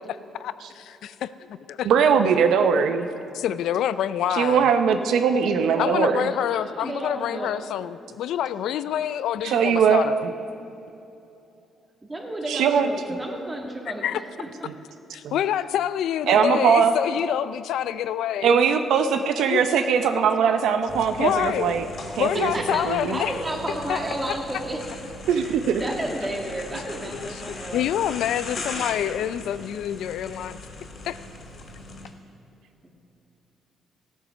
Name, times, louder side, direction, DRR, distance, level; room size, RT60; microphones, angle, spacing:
voice 1, 0.0-1.9 3.3-4.7 5.8-10.3 14.0-14.2 15.1-18.6 19.5-19.6 21.2-21.8 22.2-23.3 23.9-24.0 27.1-30.6 31.1-31.2, left 10 dB, 80° left, 14 dB, 0.4 m, -27 dB
voice 2, 1.8-3.1 4.4-6.3 9.4-10.3 12.5-12.9 15.2-15.4 16.3-16.9 18.4-21.9 22.2-22.5 22.8-23.1 25.3-25.8 28.8-28.9, right 7 dB, 80° right, 8 dB, 0.6 m, -20 dB
voice 3, 5.7-7.6 12.1-14.5 22.3-24.9 25.2-28.2 28.8-28.9 32.8-32.9, right 1 dB, 20° right, 1 dB, 2.1 m, -33 dB
sound 1, 20.9-32.0, left 3 dB, 55° left, 2.6 m, -39 dB
15.5 x 9.2 x 6.1 m, 2.8 s
cardioid pair, 90°, 0 cm